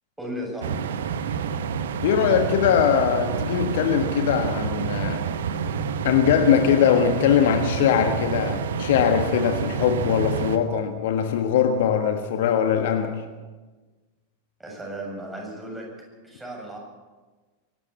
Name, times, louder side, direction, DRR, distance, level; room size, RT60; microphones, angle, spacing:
voice 1, 0.2-0.8 14.6-15.9 16.2-16.8, right 1 dB, 5° right, -1 dB, 7.5 m, -35 dB
sound 1, 0.6-10.6, right 7 dB, 60° right, 1.1 m, -28 dB
voice 2, 2.0-5.3 6.0-13.2, left 8 dB, 55° left, 7 dB, 1.5 m, -21 dB
23.5 x 13.0 x 8.6 m, 1.3 s
figure-of-eight pair, 90°, 0 cm